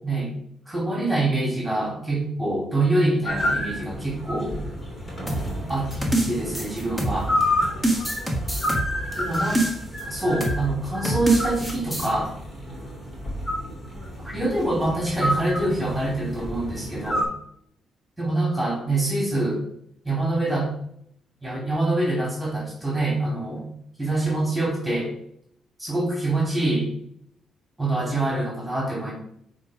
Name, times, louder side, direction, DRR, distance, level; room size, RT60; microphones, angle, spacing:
voice 1, 0.6-4.5 5.7-5.9 6.3-7.3 9.2-9.7 10.0-12.3 14.2-17.3 18.2-19.6 20.0-20.7 21.4-23.7 24.0-25.1 25.8-26.9 27.8-29.1, right 2 dB, 10° right, -4 dB, 3.4 m, -25 dB
sound 1, 3.2-17.2, left 1 dB, 30° left, 3.0 m, -30 dB
sound 2, 5.3-7.4 7.8-10.0 10.4-10.7 11.0-12.1, right 1 dB, 10° left, 1.8 m, -26 dB
8.3 x 4.0 x 5.1 m, 0.70 s
cardioid pair, 90°, 0 cm